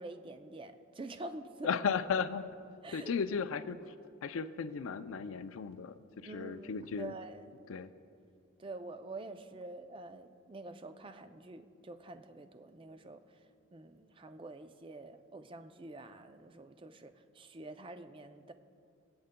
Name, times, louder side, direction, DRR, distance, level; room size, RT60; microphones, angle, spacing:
voice 1, 0.0-1.7 2.8-3.1 6.2-7.5 8.6-13.4 13.7-18.5, right 2 dB, 25° right, 9 dB, 0.4 m, -47 dB
voice 2, 1.6-2.5 2.9-3.8 4.2-5.9 6.3-7.1 7.7-7.9, left 6 dB, 70° left, 12 dB, 0.4 m, -35 dB
22.0 x 8.7 x 2.2 m, 2.4 s
head